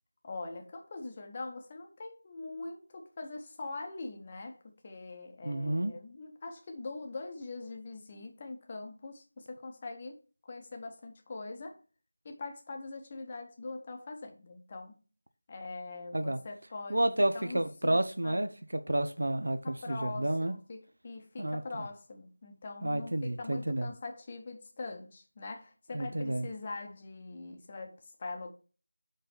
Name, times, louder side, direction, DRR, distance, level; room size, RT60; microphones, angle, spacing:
voice 1, 0.2-11.8 12.2-15.0 15.5-18.4 19.6-28.5, left 3 dB, 20° left, 0.9 m, -43 dB
voice 2, 5.4-5.9 16.1-16.4 16.9-20.5 21.4-21.6 22.8-23.9 25.9-26.5, right 1 dB, 75° right, 0.7 m, -30 dB
5.2 x 4.0 x 5.9 m
figure-of-eight pair, 175°, 0 cm